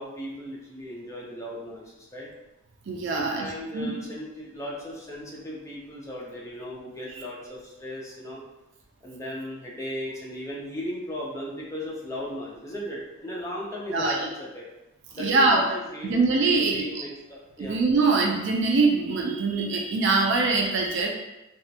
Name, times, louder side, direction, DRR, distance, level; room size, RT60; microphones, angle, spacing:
voice 1, 0.0-2.3 3.1-8.4 9.0-14.6 15.1-16.2 16.7-17.8, equal, 15° left, -5 dB, 0.5 m, -36 dB
voice 2, 2.9-3.5 3.7-3.9 13.9-14.2 15.2-15.6 16.1-16.9 17.6-21.1, right 3 dB, 60° right, 1 dB, 0.3 m, -23 dB
2.3 x 2.1 x 2.7 m, 0.97 s
head